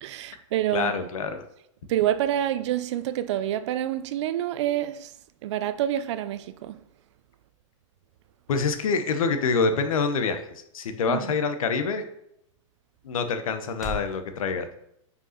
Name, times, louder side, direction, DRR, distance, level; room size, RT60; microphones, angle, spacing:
voice 1, 0.0-0.9 1.9-5.1 5.4-6.8 11.1-11.4, right 12 dB, 60° right, 0.6 m, -27 dB
voice 2, 0.7-1.4 8.5-12.0 13.0-14.7, left 4 dB, 90° left, 1.1 m, -26 dB
sound 1, 7.9-14.2, left 1 dB, 5° right, 1.1 m, -45 dB
5.6 x 5.4 x 5.7 m
supercardioid pair, 150°, 17 cm